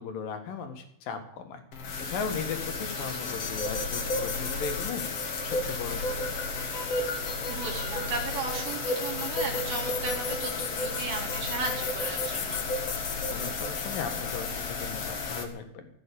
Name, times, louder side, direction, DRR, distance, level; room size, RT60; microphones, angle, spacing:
voice 1, 0.0-1.6 2.0-6.4 13.3-15.9, left 6 dB, 65° left, 6 dB, 3.4 m, -37 dB
sound 1, 1.7-15.4, left 4 dB, 45° left, 2.6 m, -34 dB
voice 2, 3.0-3.3 7.5-12.7, right 3 dB, 75° right, 0 dB, 4.7 m, -36 dB
sound 2, 3.2-14.5, left 2 dB, 90° left, 1.0 m, -35 dB
15.5 x 8.6 x 8.7 m, 0.73 s
omnidirectional pair, 4.4 m